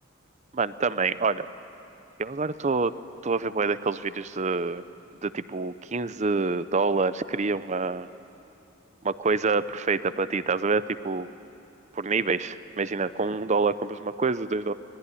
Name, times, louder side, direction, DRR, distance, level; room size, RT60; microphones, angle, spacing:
voice 1, 0.5-1.5 2.2-2.9 3.2-4.8 5.2-8.1 9.0-11.3 12.0-14.7, right 4 dB, 35° right, 15 dB, 0.6 m, -26 dB
24.5 x 20.5 x 9.9 m, 2.7 s
head